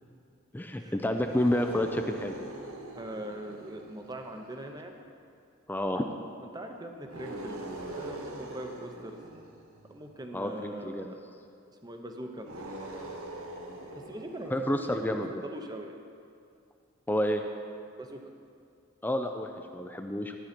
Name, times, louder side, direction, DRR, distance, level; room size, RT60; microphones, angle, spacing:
voice 1, 0.5-2.4 5.7-6.1 10.3-11.1 14.5-15.4 17.1-17.4 19.0-20.3, left 1 dB, 10° left, 5 dB, 0.4 m, -29 dB
sound 1, 1.1-4.7 7.0-10.2 12.4-15.1, right 1 dB, 85° right, 1.1 m, -42 dB
voice 2, 2.9-5.0 6.4-7.6 7.9-9.2 9.9-11.2 11.8-12.5 14.1-16.0 18.0-18.2, right 1 dB, 20° right, 4 dB, 0.8 m, -41 dB
12.5 x 9.5 x 4.4 m, 2.4 s
head